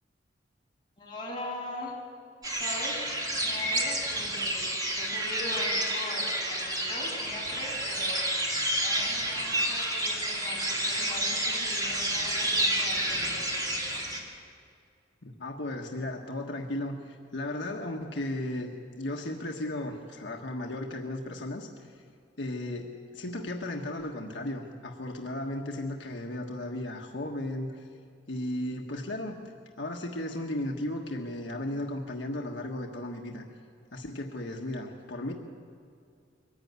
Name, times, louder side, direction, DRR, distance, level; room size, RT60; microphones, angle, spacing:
voice 1, 1.0-1.9 2.5-3.0 3.4-8.3 8.8-13.8, left 1 dB, 25° left, -4 dB, 6.4 m, -41 dB
sound 1, 2.4-14.2, right 1 dB, 20° right, 2.8 m, -30 dB
voice 2, 15.2-21.9 22.4-27.9 28.3-29.4 29.8-33.4 33.9-35.3, left 1 dB, 80° left, 1 dB, 1.4 m, -35 dB
23.0 x 15.0 x 9.6 m, 2.3 s
head